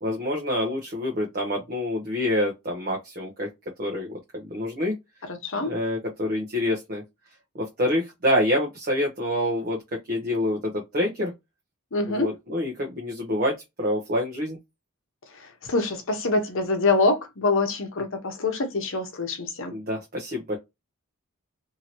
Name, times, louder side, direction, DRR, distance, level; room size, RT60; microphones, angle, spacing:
voice 1, 0.0-3.5 3.8-4.1 4.3-4.9 5.6-7.0 7.5-9.8 10.1-11.3 12.1-14.6 19.7-20.6, left 1 dB, 40° right, 0.7 m, -27 dB
voice 2, 5.3-5.8 11.9-12.3 15.3-19.7, left 3 dB, 60° left, 0.8 m, -25 dB
2.7 x 2.7 x 2.8 m
head